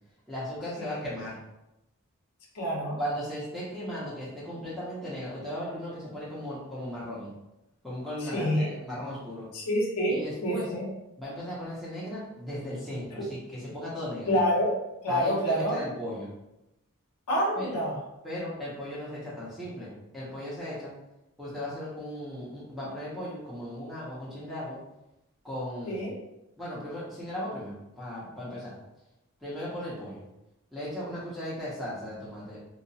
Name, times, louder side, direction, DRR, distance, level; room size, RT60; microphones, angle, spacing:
voice 1, 0.3-1.4 3.0-7.3 7.8-9.5 10.1-10.7 11.2-14.3 15.1-16.3 17.6-17.7 18.2-20.9 21.4-24.8 25.4-26.0 26.6-28.7 29.4-30.2 30.7-32.6, equal, ahead, -9 dB, 0.6 m, -37 dB
voice 2, 2.5-3.0 8.2-8.7 9.5-10.9 14.3-14.7 15.0-15.8 17.3-18.0 25.9-26.1, equal, 85° left, -3 dB, 0.7 m, -27 dB
2.8 x 2.1 x 2.6 m, 0.91 s
head